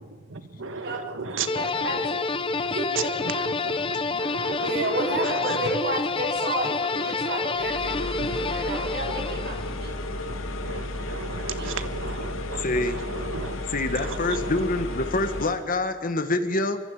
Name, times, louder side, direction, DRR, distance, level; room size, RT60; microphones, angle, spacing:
voice 1, 0.0-2.1 3.0-5.8 7.0-7.1 8.2-8.4 8.8-8.9 10.1-13.6 14.0-14.5, right 4 dB, 75° right, 10 dB, 1.6 m, -35 dB
voice 2, 1.3-2.3 2.5-3.2 4.5-10.1 11.6-11.7, right 2 dB, 55° right, 1 dB, 4.2 m, -32 dB
sound 1, 1.5-9.8, left 4 dB, 25° left, 0.9 m, -28 dB
sound 2, 7.5-15.6, left 1 dB, 90° left, 2.2 m, -33 dB
voice 3, 12.5-13.0 13.7-16.8, left 2 dB, 45° left, 8 dB, 1.7 m, -26 dB
25.0 x 24.5 x 5.1 m, 1.5 s
head